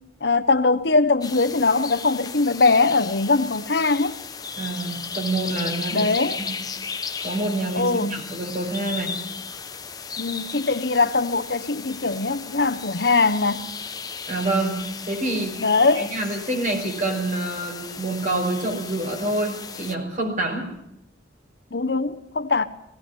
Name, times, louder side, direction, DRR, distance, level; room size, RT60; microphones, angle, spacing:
voice 1, 0.2-4.2 5.9-6.4 7.7-8.2 10.2-13.7 15.6-16.1 21.7-22.6, left 3 dB, 65° left, 1.0 m, -21 dB
sound 1, 1.2-19.9, left 6 dB, 20° left, 0.9 m, -35 dB
voice 2, 4.6-6.1 6.4-6.6 7.2-9.2 14.3-14.8 15.1-15.6 16.0-20.7, right 2 dB, 45° right, 5.3 m, -27 dB
18.0 x 17.0 x 9.7 m
head